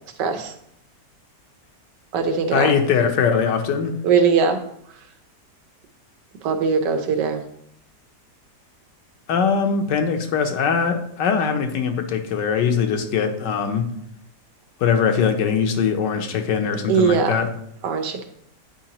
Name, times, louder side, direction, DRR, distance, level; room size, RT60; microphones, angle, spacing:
voice 1, 0.2-0.5 2.1-2.7 4.0-4.6 6.4-7.4 16.9-17.3 17.8-18.2, right 5 dB, 85° right, 6 dB, 1.4 m, -20 dB
voice 2, 2.5-3.9 9.3-13.9 14.8-17.5, left 6 dB, 85° left, 6 dB, 1.4 m, -21 dB
8.7 x 4.7 x 2.9 m, 0.72 s
omnidirectional pair, 1.8 m